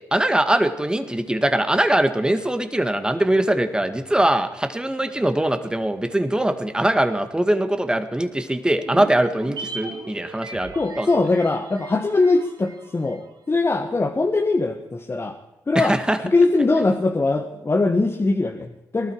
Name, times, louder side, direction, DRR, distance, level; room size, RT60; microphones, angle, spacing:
voice 1, 0.1-11.1 15.8-16.2, right 1 dB, 10° right, 9 dB, 1.7 m, -22 dB
sound 1, 8.8-13.3 13.6-13.7, right 4 dB, 70° right, 2.0 m, -38 dB
voice 2, 10.7-15.4 15.7-19.1, left 3 dB, 30° left, 4 dB, 1.5 m, -21 dB
19.5 x 12.0 x 4.8 m, 0.99 s
cardioid pair, 65°, 8 cm